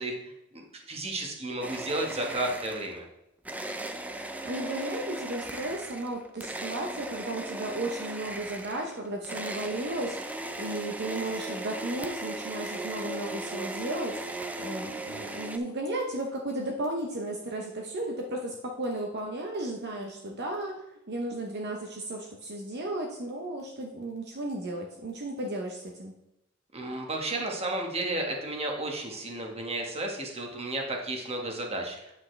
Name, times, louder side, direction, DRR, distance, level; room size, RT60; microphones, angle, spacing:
voice 1, 0.0-3.1 26.7-32.1, right 2 dB, 30° right, 1 dB, 1.5 m, -33 dB
sound 1, 1.6-3.0 3.4-15.6, right 2 dB, 5° right, 0.5 m, -37 dB
voice 2, 4.2-26.1, right 1 dB, 55° right, 1 dB, 0.9 m, -34 dB
8.4 x 7.4 x 3.3 m, 0.85 s
head